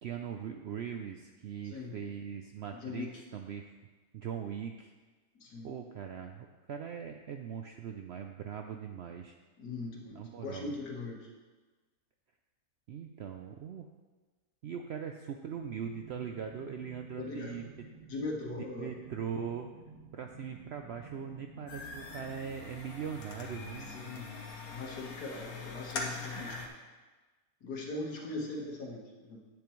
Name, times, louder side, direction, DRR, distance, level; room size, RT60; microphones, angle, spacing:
voice 1, 0.0-3.7 4.1-4.9 5.6-9.3 10.1-10.7 12.9-13.9 14.6-17.7 18.6-19.7 20.1-23.9, right 7 dB, 70° right, 4 dB, 0.6 m, -40 dB
voice 2, 1.6-2.0 2.7-3.2 5.4-5.7 9.6-11.3 17.2-17.6 18.1-18.9 23.8-24.3 24.7-26.6 27.6-29.4, left 3 dB, 85° left, -1 dB, 2.0 m, -40 dB
sound 1, 15.5-22.4, right 2 dB, 50° right, 1.7 m, -53 dB
sound 2, 21.7-26.7, left 4 dB, 70° left, 1.5 m, -42 dB
10.0 x 8.4 x 3.1 m, 1.3 s
omnidirectional pair, 1.6 m